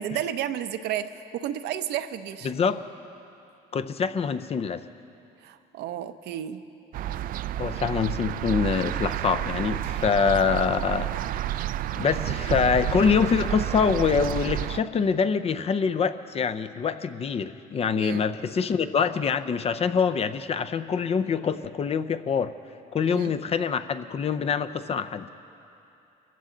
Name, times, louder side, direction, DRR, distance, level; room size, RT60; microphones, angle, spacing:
voice 1, 0.0-2.5 5.4-6.6 18.0-18.2 23.1-23.3, right 10 dB, 80° right, 10 dB, 0.7 m, -32 dB
voice 2, 2.4-2.8 3.7-4.8 7.6-11.1 12.0-22.5 22.9-25.3, left 6 dB, 35° left, 11 dB, 0.6 m, -25 dB
sound 1, 6.9-14.8, right 12 dB, 55° right, 0.4 m, -30 dB
24.0 x 15.0 x 3.9 m, 2.8 s
cardioid pair, 110°, 17 cm